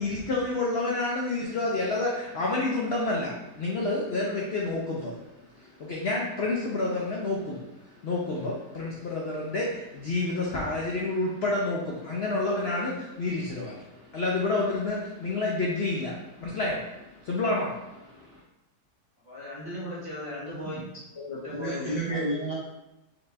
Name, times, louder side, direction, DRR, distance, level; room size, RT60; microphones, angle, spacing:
voice 1, 0.0-5.2 5.5-7.7 8.0-18.4, left 2 dB, 60° left, -3 dB, 0.6 m, -29 dB
voice 2, 19.2-20.8 21.1-22.2, left 2 dB, 20° left, -11 dB, 1.5 m, -37 dB
voice 3, 21.5-22.6, right 2 dB, 40° right, -7 dB, 0.6 m, -30 dB
4.2 x 3.1 x 3.3 m, 0.95 s
omnidirectional pair, 1.8 m